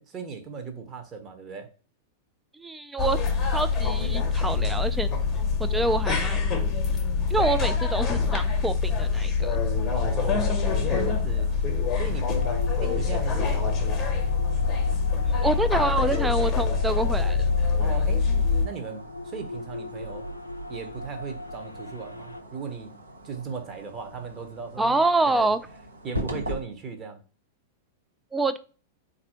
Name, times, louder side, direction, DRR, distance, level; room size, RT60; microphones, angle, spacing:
voice 1, 0.0-1.7 9.9-11.5 11.9-13.9 17.8-20.3 20.7-22.9 23.2-25.5 26.0-27.2, right 5 dB, 30° right, 0.8 m, -37 dB
voice 2, 2.5-3.2 3.5-5.1 5.6-6.7 7.3-9.6 15.2-17.5 24.8-25.6 28.3-28.6, right 2 dB, 10° right, 0.4 m, -26 dB
sound 1, 3.0-18.7, left 5 dB, 25° left, 0.9 m, -25 dB
sound 2, 10.2-26.6, equal, 85° right, 0.9 m, -43 dB
sound 3, 12.3-22.4, left 1 dB, 85° left, 0.3 m, -39 dB
4.0 x 2.6 x 4.3 m
figure-of-eight pair, 95°, 0 cm